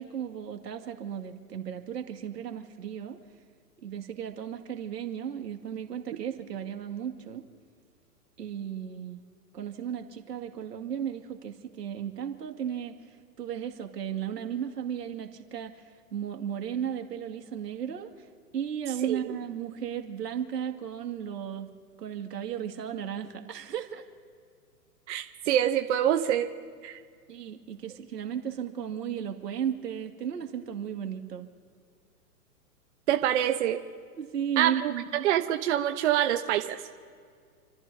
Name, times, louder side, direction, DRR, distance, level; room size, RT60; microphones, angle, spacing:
voice 1, 0.0-3.2 3.8-7.5 8.4-9.2 9.5-18.3 18.5-21.7 22.0-24.1 27.3-31.5 34.2-35.3, right 9 dB, 85° right, 4 dB, 2.2 m, -35 dB
voice 2, 25.1-26.5 26.8-27.0 33.1-33.8 34.6-36.8, right 11 dB, 50° right, 6 dB, 1.0 m, -26 dB
29.5 x 15.0 x 2.8 m, 2.1 s
hypercardioid pair, 145°, 47 cm